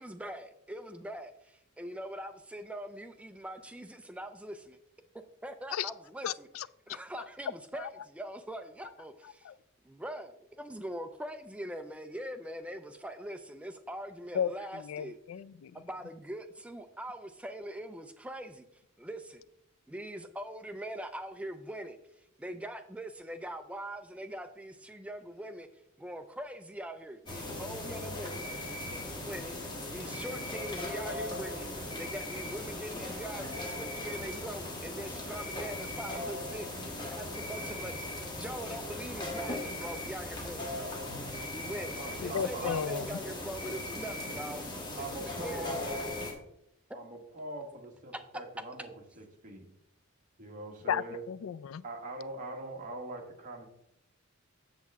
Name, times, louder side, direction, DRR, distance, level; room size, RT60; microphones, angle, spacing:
voice 1, 0.0-4.8 5.4-6.5 6.9-9.5 9.8-15.2 15.7-18.7 19.0-19.4 19.9-22.0 22.4-25.7 26.0-28.4 29.2-29.6 29.9-31.7 32.0-40.9 41.5-44.6 45.2-46.0 46.9-47.0 48.1-48.2, right 1 dB, 5° right, 0.3 m, -42 dB
voice 2, 6.2-6.7 7.8-7.9 9.4-9.5 14.3-15.7 42.2-43.2 50.9-51.8, left 8 dB, 75° left, 0.3 m, -34 dB
sound 1, 27.3-46.3, left 1 dB, 20° left, 1.4 m, -38 dB
voice 3, 41.9-42.9 45.0-46.0 46.9-48.9 49.2-49.7 50.4-51.2 51.8-53.7, right 2 dB, 40° right, 1.5 m, -42 dB
7.5 x 7.2 x 3.5 m
head